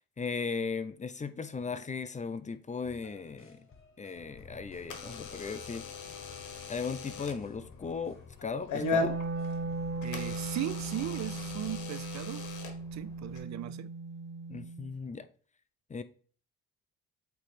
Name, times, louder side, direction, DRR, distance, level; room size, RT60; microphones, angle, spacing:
voice 1, 0.2-3.7 4.0-5.8 6.7-9.2 14.5-15.3 15.9-16.0, left 5 dB, 25° left, 0.6 m, -37 dB
sound 1, 2.8-11.7, left 4 dB, 45° left, 1.6 m, -54 dB
Door / Alarm, 4.1-13.4, left 4 dB, 80° left, 1.3 m, -39 dB
Wind instrument woodwind instrument, 8.7-14.9, right 3 dB, 35° right, 1.0 m, -38 dB
voice 2, 10.0-12.5 12.9-13.9, right 12 dB, 65° right, 0.5 m, -37 dB
8.0 x 3.2 x 4.3 m
cardioid pair, 90°, 30 cm